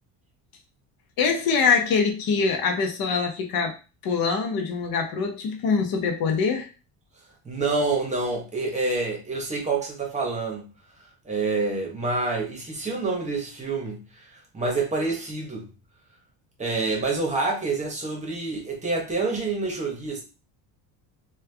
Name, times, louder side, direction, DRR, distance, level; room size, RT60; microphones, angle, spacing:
voice 1, 1.2-3.8 4.0-6.7, left 5 dB, 55° left, 0.9 m, -24 dB
voice 2, 7.4-10.6 11.2-15.7 16.6-20.2, right 3 dB, 15° right, 1.0 m, -27 dB
3.3 x 2.4 x 3.3 m
cardioid pair, 145°, 44 cm